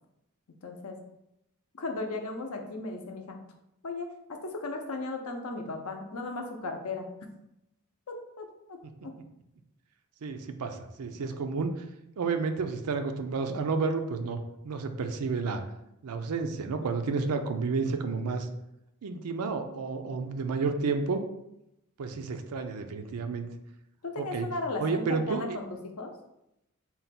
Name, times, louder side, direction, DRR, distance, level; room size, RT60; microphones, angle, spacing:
voice 1, 0.6-1.0 1.8-3.4 3.8-7.1 8.1-8.8 9.0-9.1 24.0-26.1, left 3 dB, 70° left, 4 dB, 0.6 m, -36 dB
voice 2, 10.2-11.7 12.2-15.6 16.0-18.5 19.0-21.2 22.0-23.5 24.2-24.5 24.8-25.6, right 4 dB, 85° right, 7 dB, 0.4 m, -31 dB
3.9 x 2.2 x 4.1 m, 0.84 s
head